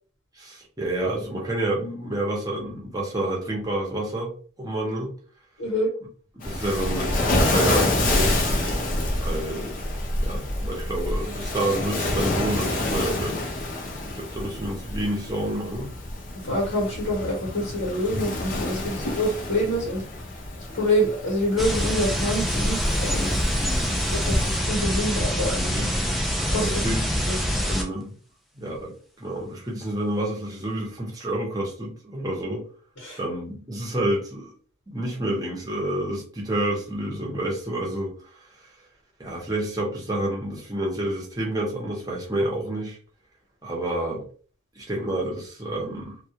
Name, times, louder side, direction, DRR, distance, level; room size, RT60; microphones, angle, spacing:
voice 1, 0.4-5.1 6.4-8.8 9.2-9.7 10.2-13.4 14.1-15.9 23.5-24.0 25.5-25.9 26.6-27.2 27.6-28.1 28.5-32.6 33.2-34.5 34.9-38.1 39.2-43.0 43.6-44.3 44.8-46.2, right 1 dB, 20° right, -2 dB, 0.7 m, -29 dB
voice 2, 5.6-5.9 16.4-20.0 20.7-23.4 24.1-25.9 26.5-26.9 27.3-27.4 27.7-27.8 33.0-33.2, equal, 85° left, -3 dB, 1.0 m, -26 dB
Waves surf, 6.4-24.6, left 1 dB, 45° left, 0.6 m, -28 dB
sound 1, 21.6-27.8, equal, ahead, 0.3 m, -25 dB
2.3 x 2.2 x 2.7 m, 0.42 s
head